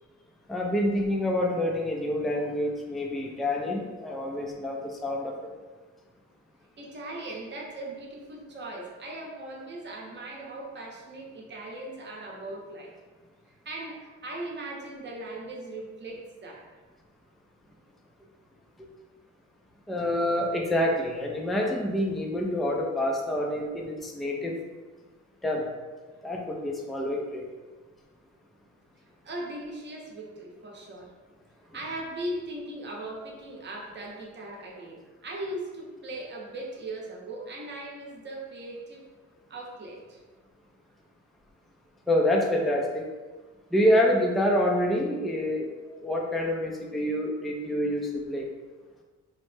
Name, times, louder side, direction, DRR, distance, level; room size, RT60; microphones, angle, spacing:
voice 1, 0.5-5.5 19.9-24.5 25.4-25.7 26.2-27.4 42.1-43.1 43.7-48.5, left 1 dB, ahead, 0 dB, 0.3 m, -27 dB
voice 2, 6.8-12.9 13.6-16.6 29.2-31.1 31.7-39.0 39.5-40.2, right 1 dB, 35° right, -2 dB, 0.8 m, -39 dB
3.1 x 2.0 x 3.1 m, 1.3 s
cardioid pair, 90°, 30 cm